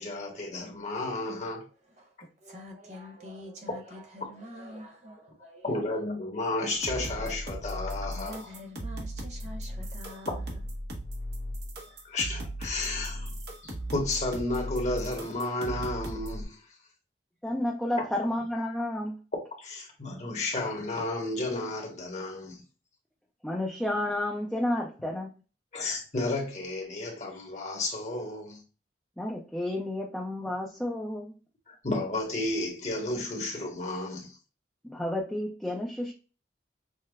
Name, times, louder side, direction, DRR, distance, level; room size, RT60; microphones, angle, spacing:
voice 1, 0.0-1.6 5.6-8.4 12.0-13.3 13.6-16.6 19.6-22.6 25.7-28.6 31.7-34.4, left 2 dB, 40° left, 1.1 m, -32 dB
voice 2, 1.8-6.0 8.0-10.4, left 1 dB, 40° right, 1.1 m, -46 dB
sound 1, 6.7-16.4, equal, 70° right, 1.1 m, -37 dB
voice 3, 17.4-19.2 23.4-25.3 29.2-31.3 34.8-36.1, left 1 dB, 5° left, 0.5 m, -31 dB
6.4 x 2.2 x 2.3 m
head